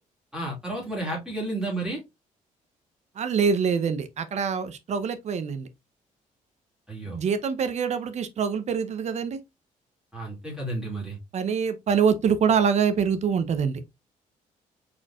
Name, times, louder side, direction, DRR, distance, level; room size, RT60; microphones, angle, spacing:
voice 1, 0.3-2.0 6.9-7.2 10.1-11.2, right 2 dB, 5° right, 2.4 m, -31 dB
voice 2, 3.2-5.7 7.1-9.4 11.3-13.8, right 6 dB, 50° right, 0.7 m, -25 dB
4.5 x 4.3 x 2.4 m
cardioid pair, 105°, 14 cm